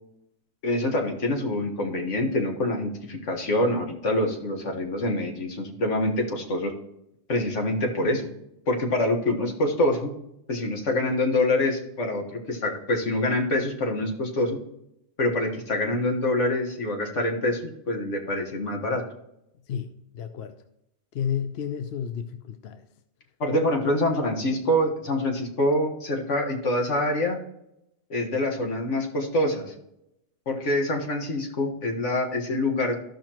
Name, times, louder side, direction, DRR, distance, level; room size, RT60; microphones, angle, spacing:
voice 1, 0.6-6.7 7.3-8.2 8.7-10.1 10.5-14.6 15.2-19.0 23.4-27.4 28.1-29.7 30.5-33.0, left 1 dB, 85° left, 1.8 m, -25 dB
voice 2, 19.7-20.6 21.1-22.8, left 8 dB, 65° left, 0.8 m, -32 dB
14.5 x 5.9 x 3.0 m
omnidirectional pair, 1.2 m